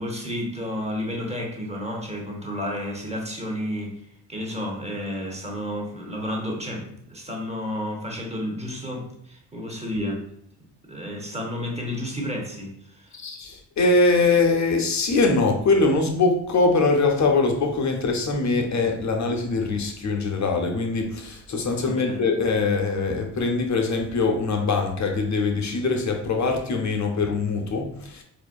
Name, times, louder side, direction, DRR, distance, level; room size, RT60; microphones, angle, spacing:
voice 1, 0.0-10.3 10.9-13.1 21.8-22.2, left 1 dB, 15° right, 0 dB, 1.1 m, -31 dB
voice 2, 13.1-28.2, left 3 dB, 35° left, 3 dB, 0.7 m, -22 dB
4.2 x 2.5 x 2.3 m, 0.69 s
hypercardioid pair, 45°, 47 cm